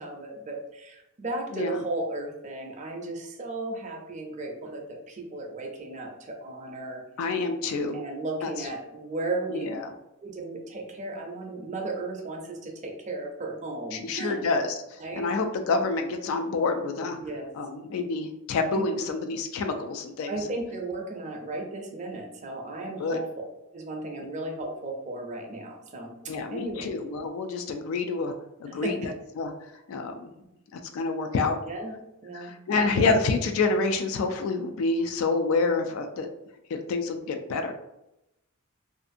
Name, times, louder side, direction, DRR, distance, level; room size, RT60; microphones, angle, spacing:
voice 1, 0.0-7.0 7.9-9.8 10.2-14.4 15.0-15.3 17.2-17.5 18.6-18.9 20.3-23.3 23.7-26.9 28.7-29.1 31.7-32.0 32.2-33.0, right 2 dB, 35° right, 1 dB, 0.5 m, -35 dB
voice 2, 1.5-1.8 7.2-8.0 8.4-8.7 9.5-9.9 13.9-17.2 17.5-20.4 23.0-23.2 26.3-28.3 28.6-29.5 29.9-30.3 30.7-31.6 32.3-36.3 36.7-37.7, left 3 dB, 70° left, 6 dB, 0.3 m, -28 dB
2.5 x 2.5 x 2.5 m, 0.89 s
head